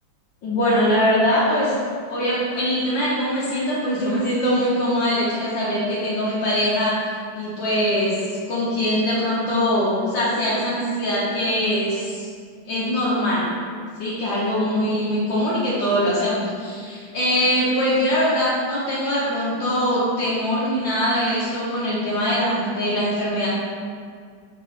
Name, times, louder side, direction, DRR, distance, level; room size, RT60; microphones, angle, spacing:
voice 1, 0.4-1.8 2.1-6.9 7.4-12.3 12.7-13.4 14.0-23.5, equal, 75° left, -9 dB, 1.8 m, -22 dB
4.9 x 4.6 x 4.9 m, 2.1 s
omnidirectional pair, 2.1 m